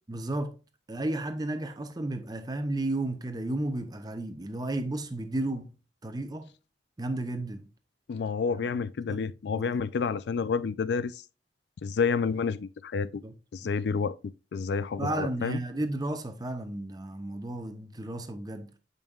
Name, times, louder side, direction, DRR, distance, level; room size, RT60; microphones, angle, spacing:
voice 1, 0.1-0.6 0.9-5.7 6.0-6.5 7.0-7.7 8.6-8.8 9.1-9.2 9.6-9.8 13.2-13.3 13.6-13.7 15.0-18.8, right 2 dB, 20° right, 0.7 m, -33 dB
voice 2, 8.1-11.2 11.8-13.2 13.5-14.1 14.5-15.6, left 5 dB, 65° left, 0.3 m, -29 dB
7.6 x 5.3 x 2.3 m
head